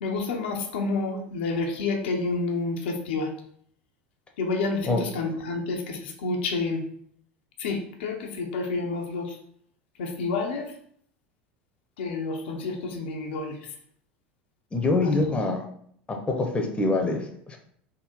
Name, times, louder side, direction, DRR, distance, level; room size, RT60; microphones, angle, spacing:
voice 1, 0.0-3.3 4.4-6.8 7.6-9.3 10.0-10.6 12.0-13.5 15.0-15.1, left 3 dB, 75° left, 2 dB, 0.7 m, -29 dB
voice 2, 14.7-15.6 16.1-17.6, left 3 dB, 20° left, 3 dB, 0.8 m, -25 dB
3.7 x 2.1 x 4.3 m, 0.64 s
hypercardioid pair, 85°, 6 cm